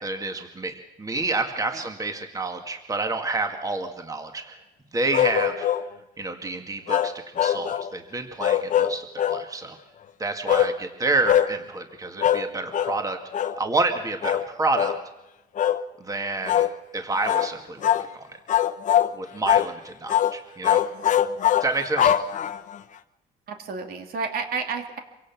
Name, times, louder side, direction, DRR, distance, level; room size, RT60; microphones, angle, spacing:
voice 1, 0.0-4.6 4.9-5.7 6.2-9.8 10.2-13.2 13.6-14.9 16.0-16.7 16.9-18.3 19.1-20.8 21.6-22.1, right 3 dB, 20° right, 5 dB, 2.1 m, -29 dB
sound 1, 5.1-5.9 6.9-7.9 8.4-9.4 10.5-10.7 11.2-11.5 12.2-12.5 12.7-13.0 13.3-13.6 14.2-14.5 14.7-15.0 15.6-15.8 16.5-16.7 17.2-17.5 17.8-18.1 18.5-19.1 19.5-19.7 20.1-20.3 20.6-22.8, left 10 dB, 50° left, 1.0 m, -22 dB
voice 2, 23.5-25.0, right 5 dB, 60° right, 4 dB, 2.8 m, -31 dB
25.5 x 17.0 x 6.0 m, 1.0 s
cardioid pair, 110°, 17 cm